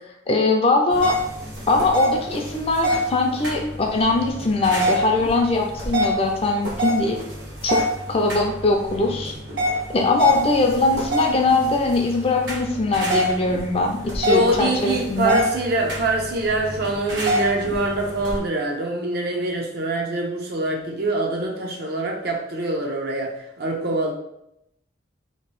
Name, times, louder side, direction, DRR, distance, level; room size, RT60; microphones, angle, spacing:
voice 1, 0.3-1.1 1.7-7.2 7.6-7.8 8.1-9.3 9.9-15.4, left 3 dB, 30° left, 2 dB, 0.4 m, -21 dB
sound 1, 0.9-18.4, equal, 75° right, 1.1 m, -27 dB
voice 2, 14.2-24.1, right 2 dB, 60° right, 0 dB, 0.6 m, -24 dB
2.9 x 2.6 x 3.0 m, 0.80 s
head